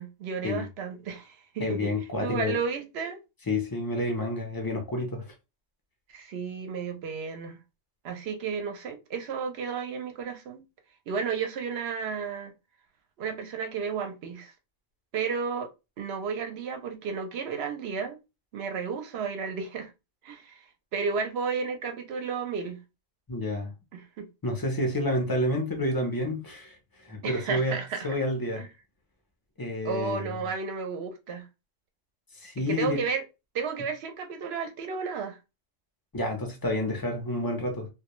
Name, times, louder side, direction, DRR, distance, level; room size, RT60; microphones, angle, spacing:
voice 1, 0.0-1.9 2.2-3.2 6.1-7.6 8.0-10.6 11.1-12.5 13.2-14.5 15.1-15.7 16.0-18.2 18.5-19.9 20.2-20.6 20.9-22.8 23.9-24.3 27.2-28.1 28.6-28.7 29.8-31.5 32.7-33.2 33.5-35.4, right 5 dB, 60° right, 0.7 m, -32 dB
voice 2, 1.6-2.6 3.5-5.3 23.3-23.7 24.4-26.8 27.0-27.8 28.0-28.6 29.6-30.4 32.3-33.0 36.1-37.9, left 1 dB, 35° left, 0.3 m, -29 dB
2.2 x 2.2 x 2.9 m
omnidirectional pair, 1.4 m